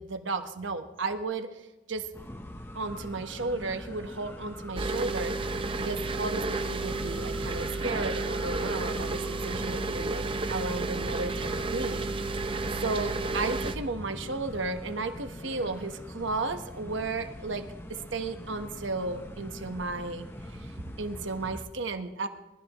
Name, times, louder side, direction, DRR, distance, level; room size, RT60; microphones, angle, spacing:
voice 1, 0.0-1.6 1.9-2.1 2.7-5.4 5.8-12.1 12.8-20.7 21.0-22.3, right 3 dB, 80° right, 7 dB, 1.2 m, -34 dB
sound 1, 2.1-21.6, left 1 dB, 10° left, 0.8 m, -43 dB
sound 2, 4.8-13.8, right 3 dB, 25° right, 0.6 m, -32 dB
22.5 x 13.5 x 3.0 m, 1.0 s
head